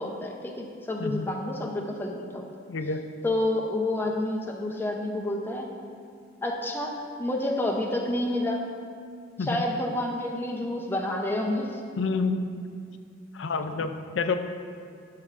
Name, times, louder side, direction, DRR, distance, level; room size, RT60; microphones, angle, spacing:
voice 1, 0.0-2.5 3.2-5.7 6.4-8.6 9.4-11.8, left 1 dB, 10° left, 0 dB, 0.6 m, -29 dB
voice 2, 2.7-3.0 9.4-9.6 12.0-12.5 13.3-14.4, left 4 dB, 85° left, 8 dB, 0.5 m, -28 dB
12.0 x 6.7 x 2.5 m, 2.3 s
head